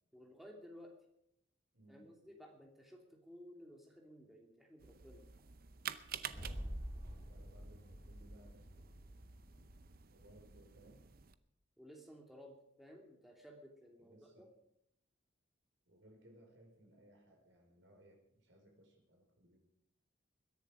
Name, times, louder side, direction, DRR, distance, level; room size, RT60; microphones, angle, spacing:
voice 1, 0.1-0.9 1.9-5.2 11.8-14.5, equal, ahead, 0 dB, 2.9 m, -56 dB
voice 2, 1.7-2.1 6.2-6.7 7.0-8.9 10.1-11.1 14.0-14.5 15.9-19.6, right 1 dB, 75° right, 1 dB, 5.1 m, -64 dB
sound 1, 4.8-11.3, right 8 dB, 50° right, 0.7 m, -51 dB
sound 2, 6.2-10.5, equal, 20° right, 3.5 m, -48 dB
21.5 x 10.5 x 5.1 m, 0.75 s
head